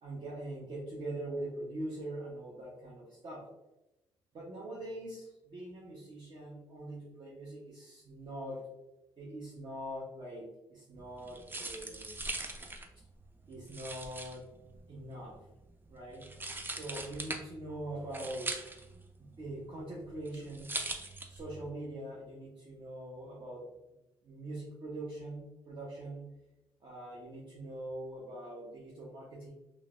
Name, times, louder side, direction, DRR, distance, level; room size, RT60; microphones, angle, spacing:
voice 1, 0.0-3.4 4.3-8.6 9.2-12.1 13.5-14.4 14.9-15.4 15.9-16.3 16.7-18.6 19.2-20.7 21.3-23.7 24.2-26.2 26.8-29.5, right 1 dB, 45° right, -6 dB, 0.8 m, -43 dB
sound 1, 11.0-21.7, right 2 dB, 20° right, 0.4 m, -42 dB
3.1 x 2.1 x 2.4 m, 0.95 s
cardioid pair, 75°, 11 cm